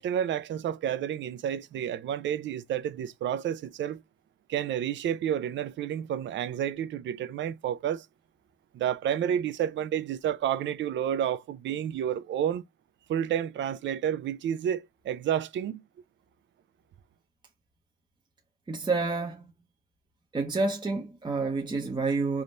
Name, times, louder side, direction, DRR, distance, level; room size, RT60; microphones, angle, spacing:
voice 1, 0.0-4.0 4.5-8.1 8.7-12.6 13.1-15.8, right 9 dB, 65° right, 0.6 m, -30 dB
voice 2, 18.7-19.5 20.3-22.4, right 3 dB, 20° right, 0.8 m, -29 dB
3.6 x 2.6 x 4.3 m
cardioid pair, 90°, 20 cm